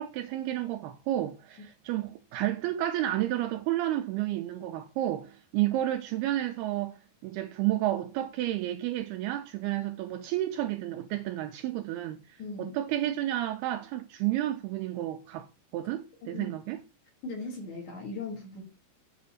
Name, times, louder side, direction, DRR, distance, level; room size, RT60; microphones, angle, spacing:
voice 1, 0.0-15.5 15.7-16.8, right 14 dB, 80° right, 2.3 m, -31 dB
voice 2, 12.4-12.7 16.2-16.5 17.2-18.6, left 3 dB, 50° left, 2.8 m, -38 dB
8.6 x 4.1 x 5.6 m
omnidirectional pair, 4.9 m